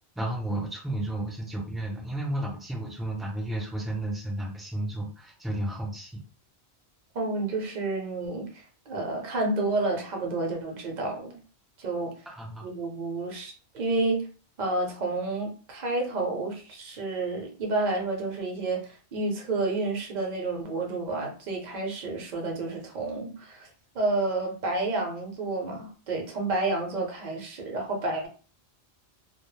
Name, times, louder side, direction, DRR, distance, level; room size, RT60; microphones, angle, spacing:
voice 1, 0.2-6.2 12.3-12.7, right 1 dB, ahead, 0.4 m, -32 dB
voice 2, 7.1-11.4 11.8-12.1 12.6-14.3 14.6-23.7 23.9-28.3, right 2 dB, 50° right, 0.7 m, -30 dB
2.2 x 2.0 x 3.1 m
omnidirectional pair, 1.1 m